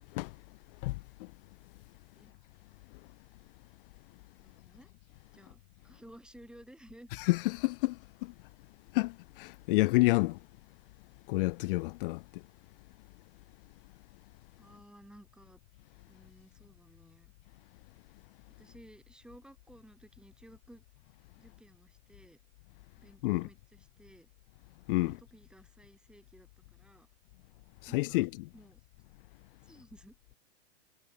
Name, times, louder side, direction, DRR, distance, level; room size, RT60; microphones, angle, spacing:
voice 1, 0.8-1.3 7.1-8.3 8.9-10.4 11.3-12.4 23.2-23.5 24.9-25.2 27.8-28.5, left 22 dB, 50° left, 1.1 m, -29 dB
voice 2, 4.4-4.9 5.3-7.1 9.7-9.8 14.6-15.6 16.1-17.3 18.6-20.8 21.4-22.4 23.0-24.3 25.0-27.1 27.9-28.3 28.5-28.8 29.6-30.2, right 1 dB, ahead, 6.1 m, -56 dB
hypercardioid pair, 125°, 34 cm